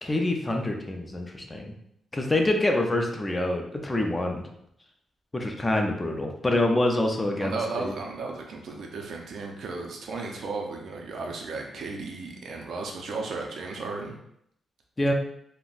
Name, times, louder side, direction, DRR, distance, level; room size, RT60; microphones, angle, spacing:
voice 1, 0.0-1.7 2.1-4.5 5.3-7.9 15.0-15.1, left 1 dB, 15° left, 2 dB, 0.4 m, -26 dB
voice 2, 7.4-14.1, right 3 dB, 65° right, 1 dB, 0.5 m, -34 dB
3.7 x 2.1 x 2.4 m, 0.73 s
cardioid pair, 135°, 0 cm